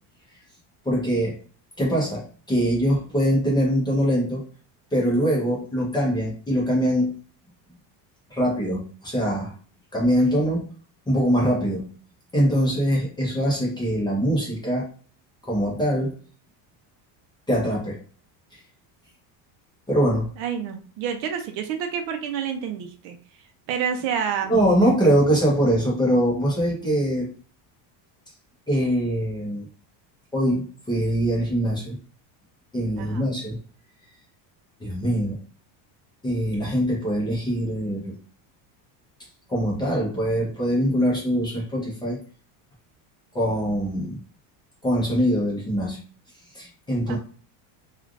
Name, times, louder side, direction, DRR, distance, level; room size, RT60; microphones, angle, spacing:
voice 1, 0.8-1.4 1.8-4.4 4.9-7.1 8.3-9.5 9.9-10.7 11.1-11.9 12.3-14.9 15.4-16.1 17.5-18.0 19.9-20.3 24.5-27.3 28.7-29.7 30.3-32.0 32.7-33.6 34.8-35.4 36.2-38.1 39.5-42.2 43.3-44.2 44.8-46.0 46.5-47.2, equal, 10° left, -5 dB, 0.7 m, -23 dB
voice 2, 20.4-23.2 23.7-24.5 33.0-33.3 47.1-47.2, right 7 dB, 60° right, 5 dB, 0.6 m, -28 dB
3.2 x 2.4 x 2.5 m, 0.41 s
cardioid pair, 165°, 48 cm